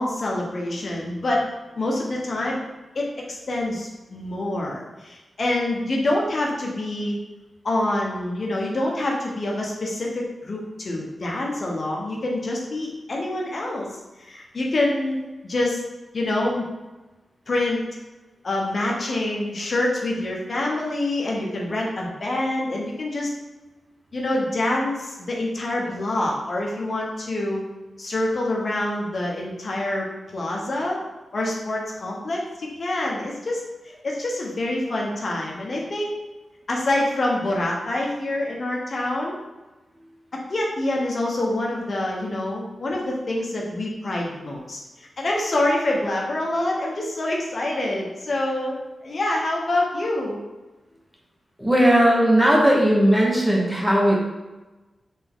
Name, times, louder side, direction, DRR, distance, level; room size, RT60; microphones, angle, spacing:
voice 1, 0.0-1.4 1.8-2.6 2.9-7.2 7.6-15.2 15.5-15.8 16.1-16.7 17.5-17.8 18.4-23.3 24.1-27.6 28.0-30.1 30.3-31.0 31.3-33.6 34.0-36.1 36.7-39.4 40.5-50.4, left 1 dB, 50° left, -2 dB, 0.8 m, -26 dB
voice 2, 51.6-54.2, equal, 5° right, -3 dB, 1.0 m, -17 dB
4.2 x 3.4 x 3.6 m, 1.1 s
wide cardioid pair, 105°, 0 cm